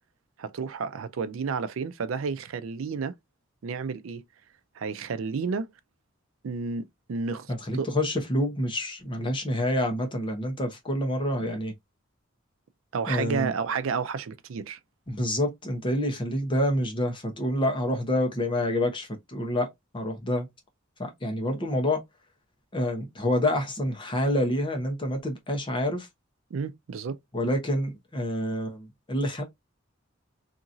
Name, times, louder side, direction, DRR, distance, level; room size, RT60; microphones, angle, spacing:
voice 1, 0.4-3.1 3.6-4.2 4.8-5.7 6.4-7.9 11.4-11.6 12.9-14.8 26.5-27.2, right 5 dB, 80° right, 0.4 m, -31 dB
voice 2, 7.5-11.7 13.1-13.5 15.1-19.7 19.9-20.5 21.0-22.0 22.7-26.1 27.3-29.4, left 1 dB, 25° left, 0.8 m, -27 dB
2.9 x 2.5 x 2.5 m
head